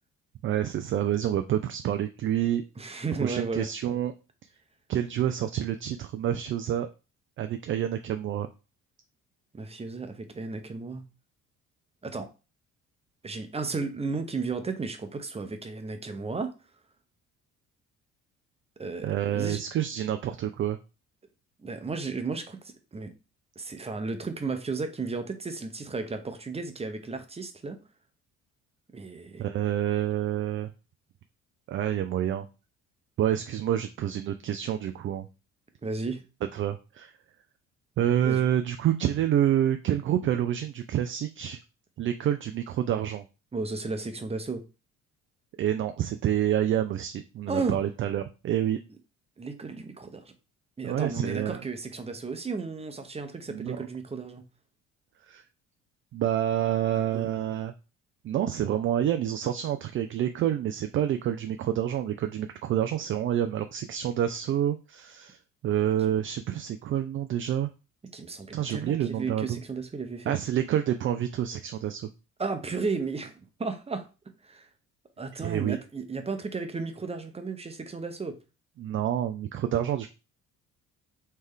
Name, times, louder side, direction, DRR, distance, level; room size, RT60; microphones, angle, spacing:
voice 1, 0.4-2.6 3.2-4.1 4.9-6.9 7.4-8.5 19.0-20.8 29.4-30.7 31.7-32.5 33.2-35.3 36.5-37.1 38.0-41.6 42.0-43.2 45.6-48.8 50.8-51.6 53.5-53.8 55.3-55.4 56.1-57.7 58.2-65.4 65.6-67.7 68.5-69.6 70.3-72.1 75.4-75.8 78.8-80.1, right 11 dB, 35° right, 0.4 m, -28 dB
voice 2, 2.8-3.7 9.5-11.1 12.0-12.3 13.2-16.5 18.8-19.6 21.6-23.1 23.6-27.8 28.9-29.4 35.8-36.2 38.2-38.4 43.5-44.6 47.5-47.8 49.4-50.3 50.8-54.4 56.9-57.3 65.9-66.0 68.1-70.3 72.4-74.1 74.4-74.7 75.2-78.4, right 4 dB, 15° right, 0.8 m, -34 dB
3.3 x 3.2 x 3.6 m
hypercardioid pair, 50°, 39 cm